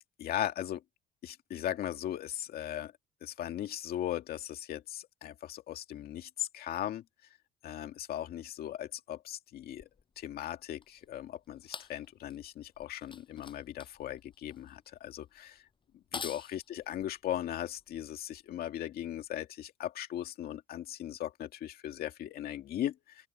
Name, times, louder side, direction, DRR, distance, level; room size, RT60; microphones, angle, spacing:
voice 1, 0.2-0.8 1.2-2.9 3.2-7.0 7.6-9.8 10.2-15.6 16.2-22.9, left 12 dB, 65° left, 2.2 m, -38 dB
sound 1, 9.8-18.4 19.2-19.3, left 5 dB, 30° left, 7.2 m, -48 dB
open air
cardioid pair, 110°, 17 cm